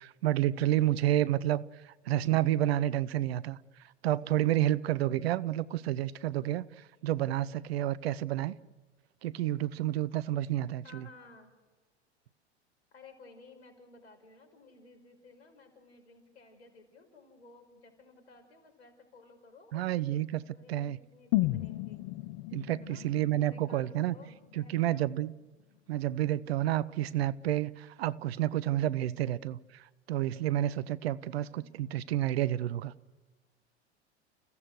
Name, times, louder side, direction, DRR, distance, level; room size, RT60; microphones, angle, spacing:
voice 1, 0.0-3.6 4.0-8.5 9.2-11.1 19.7-20.4 20.7-21.0 22.5-24.2 24.6-25.3 25.9-32.9, right 13 dB, 65° right, 0.9 m, -30 dB
voice 2, 10.8-11.5 12.9-22.0 22.8-23.0 23.5-25.1 31.4-32.0, left 3 dB, 75° left, 5.6 m, -56 dB
sound 1, 21.3-25.3 25.6-25.7, left 18 dB, 45° left, 0.7 m, -35 dB
29.5 x 16.5 x 6.4 m
figure-of-eight pair, 85°, 34 cm